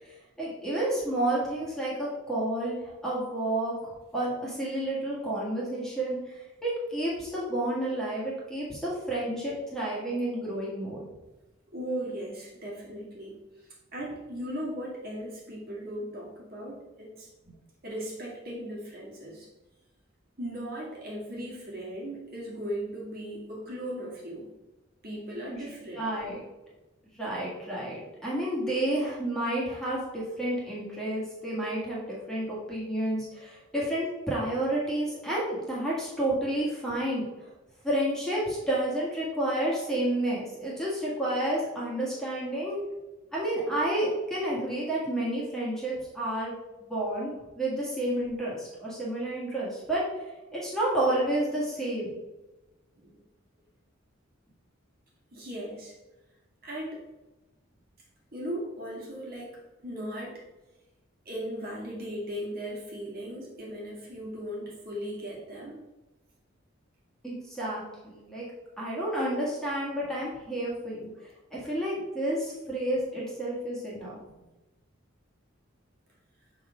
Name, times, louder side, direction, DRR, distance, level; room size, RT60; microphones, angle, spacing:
voice 1, 0.0-6.3 6.6-11.0 17.4-17.5 25.5-25.6 25.9-26.4 27.1-37.3 37.8-42.8 43.3-46.5 46.8-50.0 50.5-52.1 67.2-68.5 68.8-71.1 71.5-74.2, right 1 dB, ahead, -6 dB, 1.6 m, -30 dB
voice 2, 11.7-17.3 17.8-19.5 20.4-24.5 25.0-26.0 53.0-53.2 55.3-55.9 56.6-57.0 58.3-60.4 61.3-65.8, equal, 50° right, -4 dB, 1.9 m, -37 dB
6.0 x 4.0 x 4.9 m, 1.1 s
head